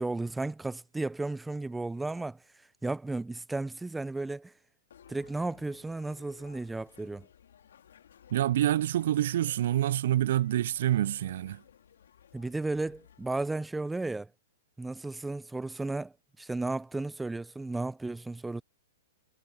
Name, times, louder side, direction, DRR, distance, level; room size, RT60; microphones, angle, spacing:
voice 1, 0.0-2.4 2.8-4.5 5.1-7.3 12.3-14.3 14.8-18.6, right 2 dB, 5° right, 0.5 m, -34 dB
sound 1, 4.9-13.5, left 9 dB, 75° left, 3.3 m, -58 dB
voice 2, 8.3-11.6, right 12 dB, 65° right, 0.3 m, -27 dB
hypercardioid pair, 120°, 0 cm